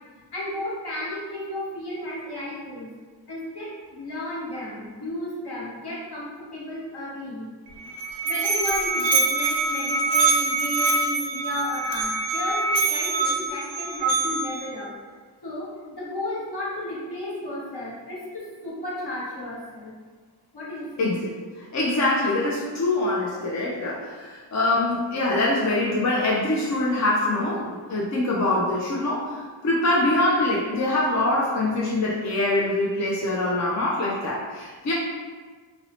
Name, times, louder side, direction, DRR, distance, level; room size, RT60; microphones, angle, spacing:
voice 1, 0.3-2.9 3.3-7.5 8.2-14.9 15.4-19.9 20.5-21.1, left 1 dB, 60° left, -6 dB, 0.9 m, -33 dB
Musical instrument, 7.7-14.7, right 3 dB, 70° right, 0.5 m, -24 dB
voice 2, 21.0-21.3 21.7-34.9, left 2 dB, 40° left, -5 dB, 0.4 m, -24 dB
2.7 x 2.0 x 2.8 m, 1.5 s
wide cardioid pair, 50°, 45 cm